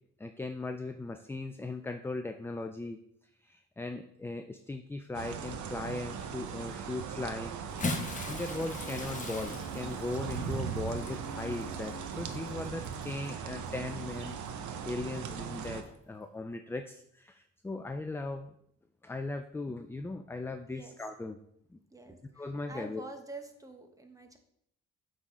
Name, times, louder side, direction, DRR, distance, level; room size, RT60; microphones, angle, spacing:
voice 1, 0.2-3.0 3.4-7.6 7.8-18.5 19.0-21.4 21.7-21.8 22.4-23.0, left 2 dB, 10° left, 7 dB, 0.3 m, -38 dB
sound 1, 5.1-15.8, right 7 dB, 75° right, 0.9 m, -39 dB
Bathtub (filling or washing) / Splash splatter, 7.6-13.3 14.2-14.3 15.8-15.9, left 3 dB, 25° left, 1.0 m, -40 dB
Wind instrument woodwind instrument, 9.4-13.8, right 1 dB, 50° left, 1.3 m, -51 dB
voice 2, 21.9-24.4, right 2 dB, 10° right, 5 dB, 1.1 m, -47 dB
8.1 x 3.8 x 4.7 m, 0.73 s
cardioid pair, 90°, 30 cm